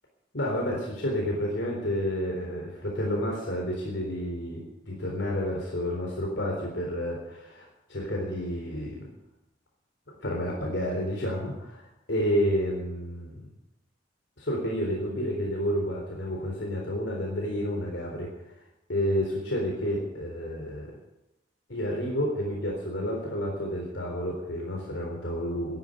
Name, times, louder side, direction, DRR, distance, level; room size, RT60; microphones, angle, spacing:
voice 1, 0.3-9.1 10.2-13.4 14.4-18.3 18.9-20.9 21.7-25.8, equal, 75° left, -1 dB, 3.9 m, -30 dB
12.0 x 10.5 x 9.9 m, 0.92 s
head